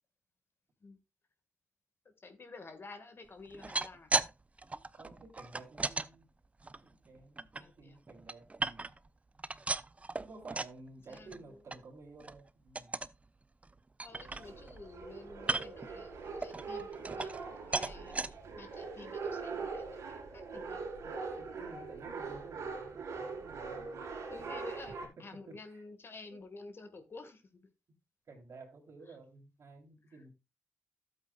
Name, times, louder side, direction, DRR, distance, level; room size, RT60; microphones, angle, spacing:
voice 1, 2.2-4.1 7.6-8.0 11.1-11.6 14.0-21.0 24.3-27.6 29.1-29.2 30.1-30.2, left 3 dB, 50° left, 1.8 m, -51 dB
sound 1, 3.5-4.3 4.6-6.1 6.6-7.6 8.1-9.1 9.4-10.8 11.1-11.4 11.7-11.8 12.2-12.4 12.8-13.2 13.6-13.7 14.0-14.8 15.4-15.9 16.4-17.5 17.7-18.3 18.9-19.0 19.3-19.4, right 3 dB, 25° right, 0.5 m, -36 dB
voice 2, 4.9-6.3 6.8-9.0 10.2-13.0 21.0-24.0 25.2-25.8 26.3-26.4 28.3-30.3, right 3 dB, 60° right, 3.2 m, -53 dB
sound 2, 14.1-25.1, right 4 dB, 80° right, 3.2 m, -42 dB
12.0 x 8.1 x 2.4 m
supercardioid pair, 50°, 5 cm